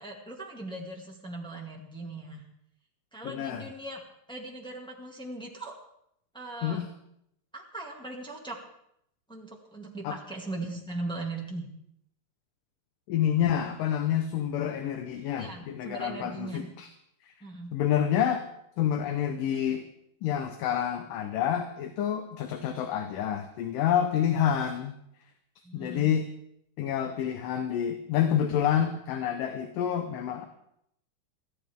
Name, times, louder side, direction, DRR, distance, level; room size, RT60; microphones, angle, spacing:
voice 1, 0.0-2.4 3.1-4.0 4.3-5.8 6.3-6.8 7.5-8.6 9.3-11.7 15.4-16.7 17.4-17.7 25.6-26.2, right 2 dB, 5° left, -1 dB, 0.6 m, -39 dB
voice 2, 3.2-3.7 6.6-6.9 10.0-10.2 13.1-16.9 17.7-18.4 18.8-19.8 20.2-24.9 25.7-26.3 26.8-30.5, left 9 dB, 70° left, 7 dB, 2.4 m, -28 dB
23.0 x 15.0 x 3.6 m, 0.74 s
omnidirectional pair, 4.3 m